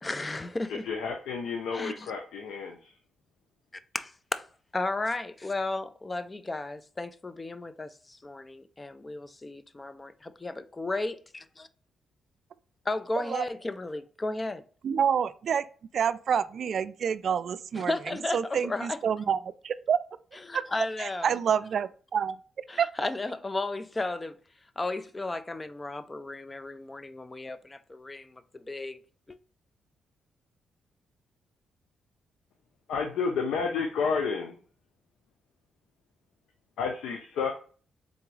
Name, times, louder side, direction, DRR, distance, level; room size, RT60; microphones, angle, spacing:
voice 1, 0.0-0.9 1.7-2.1 3.9-4.5 4.7-11.7 12.9-14.6 17.8-19.0 20.5-21.3 22.7-24.4 24.8-29.0 29.3-29.4, left 2 dB, 25° left, 0.4 m, -34 dB
voice 2, 0.8-2.9 32.9-34.5 36.8-37.5, left 5 dB, 90° left, 0.6 m, -30 dB
voice 3, 14.8-15.6 15.9-17.9 18.3-20.0 20.5-20.6 21.0-22.9, right 7 dB, 60° right, 0.3 m, -28 dB
3.9 x 3.5 x 3.2 m
cardioid pair, 85°, 0 cm